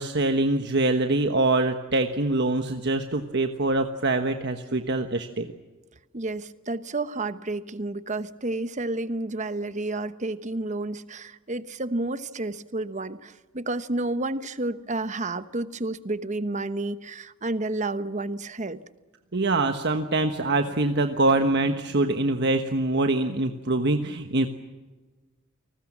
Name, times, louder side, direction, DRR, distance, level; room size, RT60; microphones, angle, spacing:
voice 1, 0.0-5.5 19.3-24.5, right 2 dB, 55° right, 6 dB, 1.3 m, -24 dB
voice 2, 6.1-18.8, right 2 dB, 35° right, 13 dB, 1.0 m, -30 dB
29.5 x 20.0 x 7.4 m, 1.3 s
head